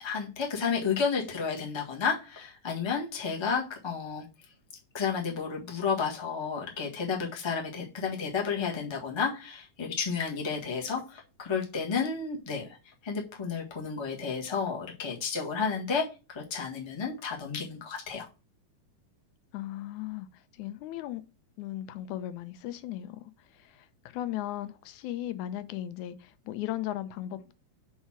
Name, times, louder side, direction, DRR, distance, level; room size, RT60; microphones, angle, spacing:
voice 1, 0.0-4.2 4.9-12.7 13.0-18.3, left 6 dB, 15° left, 0.9 m, -31 dB
voice 2, 19.5-21.2 21.6-27.5, left 13 dB, 90° left, 2.1 m, -37 dB
5.7 x 4.3 x 5.8 m
omnidirectional pair, 3.3 m